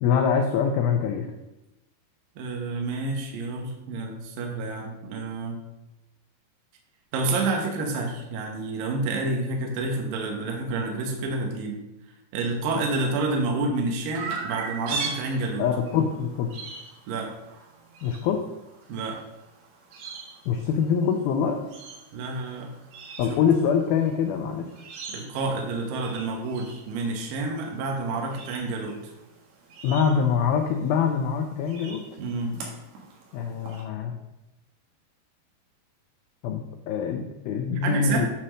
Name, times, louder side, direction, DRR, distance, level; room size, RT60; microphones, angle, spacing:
voice 1, 0.0-1.3 15.6-16.5 18.0-18.4 20.5-21.6 23.2-24.7 29.8-32.0 33.3-34.1 36.4-36.6 36.9-38.3, left 7 dB, 90° left, 4 dB, 2.1 m, -24 dB
voice 2, 2.4-5.6 7.1-11.8 12.3-15.7 17.1-17.3 18.9-19.2 22.1-22.7 23.2-23.4 25.1-29.1 32.2-32.5 37.8-38.3, right 3 dB, 70° right, 1 dB, 2.2 m, -29 dB
Chirp tweet, 14.2-33.8, right 4 dB, 90° right, 4.0 m, -41 dB
9.0 x 4.2 x 6.2 m, 0.96 s
omnidirectional pair, 5.1 m